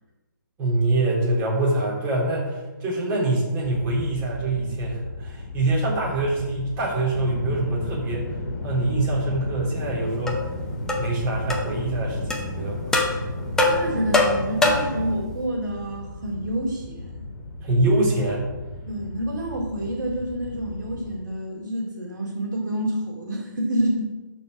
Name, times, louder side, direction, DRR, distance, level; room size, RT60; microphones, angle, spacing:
voice 1, 0.6-8.3 8.6-10.4 11.0-12.9 17.6-18.5, right 2 dB, 25° right, -5 dB, 3.3 m, -24 dB
sound 1, 3.6-21.2, left 2 dB, 45° left, 1.8 m, -34 dB
sound 2, 10.3-10.4 10.9-11.1 11.5-11.6 12.3-12.4 12.9-13.1 13.6-15.0, left 2 dB, 5° left, 0.9 m, -21 dB
voice 2, 13.6-17.1 18.9-24.1, right 1 dB, 65° right, -2 dB, 2.5 m, -28 dB
12.5 x 4.6 x 4.9 m, 1.2 s
hypercardioid pair, 145°, 11 cm